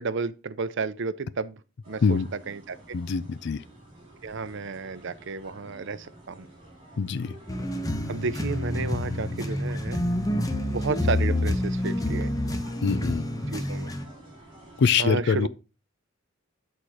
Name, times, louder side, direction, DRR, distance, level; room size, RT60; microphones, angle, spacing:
voice 1, 0.0-1.6 1.9-3.0 4.2-6.5 8.1-10.0 10.6-12.3 13.5-13.9 15.0-15.5, right 4 dB, 60° right, 0.6 m, -32 dB
sound 1, 1.8-14.9, right 1 dB, 25° right, 4.6 m, -49 dB
voice 2, 2.9-3.6 7.0-7.3 12.8-13.2 14.8-15.5, left 5 dB, 60° left, 0.4 m, -24 dB
sound 2, 7.5-14.0, left 1 dB, 20° left, 0.9 m, -28 dB
8.1 x 4.4 x 4.8 m
head